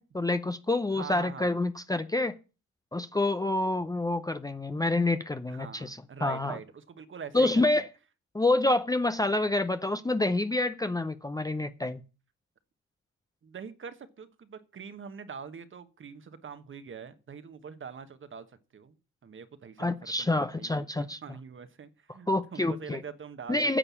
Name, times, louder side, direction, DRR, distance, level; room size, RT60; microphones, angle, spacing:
voice 1, 0.0-2.3 2.9-6.6 7.3-7.9 8.3-12.0 19.8-21.2 22.3-23.0 23.5-23.8, left 2 dB, 10° left, 0.6 m, -27 dB
voice 2, 0.9-1.6 5.5-7.8 13.4-18.5 18.7-23.6, right 6 dB, 40° right, 1.3 m, -44 dB
10.0 x 6.7 x 7.0 m
cardioid pair, 90°, 30 cm